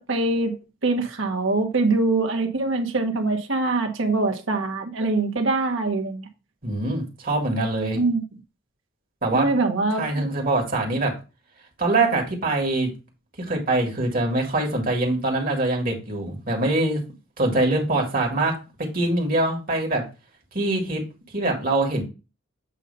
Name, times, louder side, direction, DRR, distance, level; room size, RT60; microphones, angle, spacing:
voice 1, 0.0-6.3 7.9-8.2 9.3-10.3, right 3 dB, 65° right, 1.3 m, -23 dB
voice 2, 6.6-8.0 9.2-9.5 10.0-11.1 11.8-12.9 13.4-17.0 17.4-18.5 18.8-20.0 20.5-21.0 21.3-22.0, right 2 dB, 45° right, 1.9 m, -23 dB
8.2 x 2.8 x 5.4 m
head